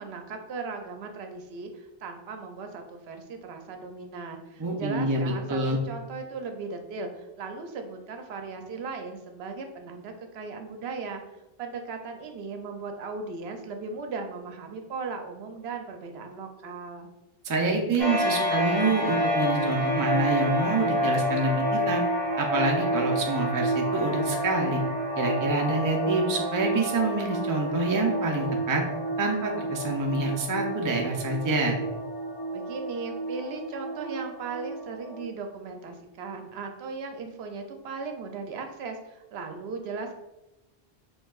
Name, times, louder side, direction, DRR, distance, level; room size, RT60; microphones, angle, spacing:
voice 1, 0.0-11.2 11.6-17.1 32.5-40.2, right 4 dB, 75° right, 5 dB, 0.8 m, -37 dB
voice 2, 4.6-5.8 17.4-22.0 22.4-24.8 25.2-28.8 29.2-31.8, right 3 dB, 30° right, 1 dB, 0.4 m, -27 dB
sound 1, 18.0-35.2, equal, 10° right, 1.3 m, -29 dB
4.5 x 3.1 x 2.3 m, 0.97 s
omnidirectional pair, 1.1 m